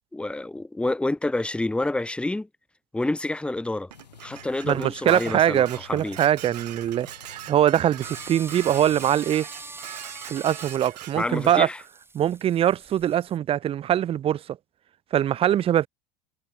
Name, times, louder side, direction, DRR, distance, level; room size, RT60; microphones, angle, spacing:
voice 1, 0.1-2.5 2.9-3.9 4.2-6.2 11.2-11.8, left 2 dB, 5° left, 0.9 m, -28 dB
sound 1, 3.9-9.1, left 8 dB, 85° left, 4.0 m, -51 dB
Dishes pots and pans, 3.9-11.6, right 13 dB, 75° right, 3.3 m, -42 dB
voice 2, 4.6-9.5 10.3-11.7 12.1-14.4 15.1-15.9, right 11 dB, 30° right, 0.5 m, -22 dB
sound 2, 8.0-13.4, right 3 dB, 10° right, 2.5 m, -43 dB
hypercardioid pair, 85°, 21 cm